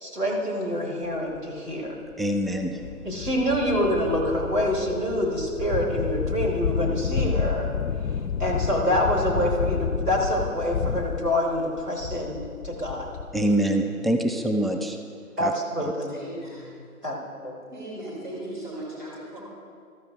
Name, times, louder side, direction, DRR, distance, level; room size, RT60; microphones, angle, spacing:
voice 1, 0.0-1.9 3.0-7.7 8.4-12.4 12.6-13.1 15.4-16.1 17.0-17.1 17.4-17.5, equal, 90° right, -2 dB, 3.0 m, -26 dB
sound 1, 1.3-1.4 2.1-2.2 2.6-13.6, left 6 dB, 90° left, 0.5 m, -30 dB
voice 2, 2.2-2.8 13.3-15.0 15.4-15.5, right 1 dB, ahead, 4 dB, 0.4 m, -24 dB
voice 3, 16.1-16.8 17.7-19.4, right 1 dB, 30° right, -6 dB, 2.7 m, -37 dB
13.5 x 13.0 x 2.5 m, 2.1 s
figure-of-eight pair, 175°, 45 cm